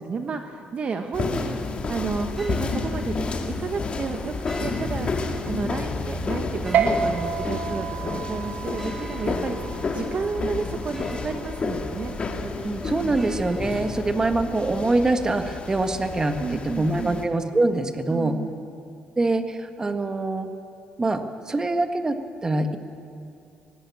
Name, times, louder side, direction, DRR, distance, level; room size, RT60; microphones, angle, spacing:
voice 1, 0.0-12.1 13.0-13.1 16.4-17.2 18.1-18.7, right 5 dB, 40° right, 6 dB, 1.1 m, -32 dB
sound 1, 1.1-17.3, left 4 dB, 35° left, 2.1 m, -31 dB
sound 2, 1.8-14.4, equal, 5° right, 2.0 m, -39 dB
sound 3, 6.7-13.5, right 6 dB, 70° right, 1.7 m, -31 dB
voice 2, 12.6-16.4 16.6-18.4 19.2-20.5 21.0-22.8, right 2 dB, 20° right, 7 dB, 1.5 m, -24 dB
20.5 x 18.0 x 8.6 m, 2.5 s
cardioid pair, 115°, 3 cm